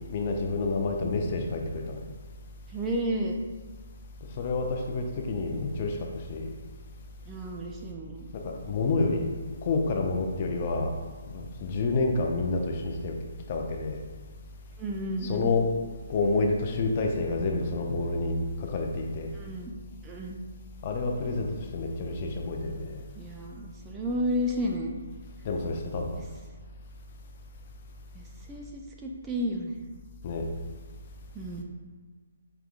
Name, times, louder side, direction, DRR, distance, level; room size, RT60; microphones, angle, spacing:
voice 1, 0.1-2.0 4.4-6.5 8.3-9.3 9.6-10.9 11.3-13.2 13.5-14.0 15.2-15.6 16.1-19.3 20.8-23.0 25.4-26.2 30.2-30.5, left 3 dB, 35° left, 2 dB, 0.5 m, -29 dB
voice 2, 2.7-3.4 7.3-8.3 14.8-15.5 19.3-19.7 20.0-20.4 23.1-25.0 26.1-26.2 28.1-29.8 31.3-31.6, equal, 15° right, 0 dB, 0.4 m, -32 dB
4.8 x 3.5 x 2.5 m, 1.5 s
figure-of-eight pair, 140°, 0 cm